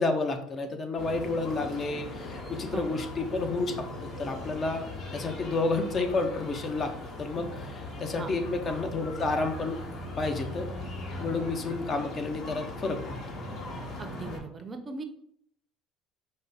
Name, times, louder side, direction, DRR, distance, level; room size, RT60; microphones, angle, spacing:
voice 1, 0.0-4.9 5.1-6.9 7.2-9.8 10.2-10.7 11.2-13.0, left 3 dB, 40° left, 6 dB, 0.7 m, -30 dB
sound 1, 1.0-14.4, left 1 dB, 55° left, 1.6 m, -39 dB
voice 2, 14.0-15.0, right 3 dB, 30° right, 7 dB, 0.6 m, -39 dB
5.0 x 2.2 x 4.1 m, 0.71 s
supercardioid pair, 80°, 0 cm